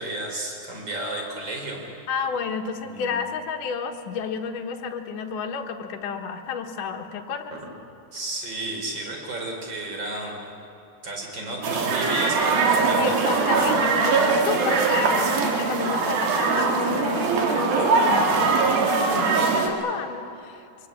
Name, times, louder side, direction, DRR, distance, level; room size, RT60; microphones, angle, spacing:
voice 1, 0.0-1.8 2.9-3.1 7.5-7.6 8.1-10.4 11.0-13.1, right 2 dB, 30° right, 1 dB, 4.5 m, -32 dB
voice 2, 2.1-7.5 13.0-20.9, left 6 dB, 65° left, 3 dB, 2.8 m, -31 dB
sound 1, 11.6-19.7, right 4 dB, 80° right, 4.0 m, -21 dB
24.0 x 22.0 x 8.6 m, 2.7 s
omnidirectional pair, 4.1 m